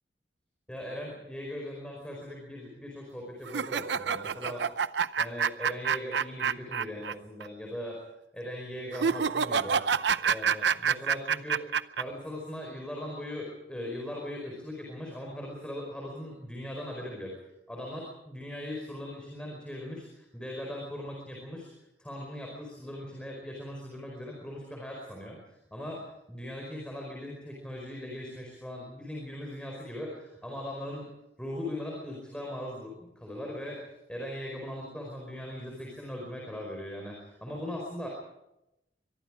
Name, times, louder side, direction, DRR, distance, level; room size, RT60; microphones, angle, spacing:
voice 1, 0.7-4.6 5.2-8.0 8.3-9.8 10.2-17.3 17.7-21.7 22.0-31.1 31.4-33.8 34.1-38.1, left 1 dB, 5° left, -1 dB, 4.9 m, -39 dB
sound 1, 3.5-7.1 7.4-7.5 8.9-12.0, right 6 dB, 75° right, 0.7 m, -27 dB
23.5 x 23.0 x 5.0 m, 0.88 s
head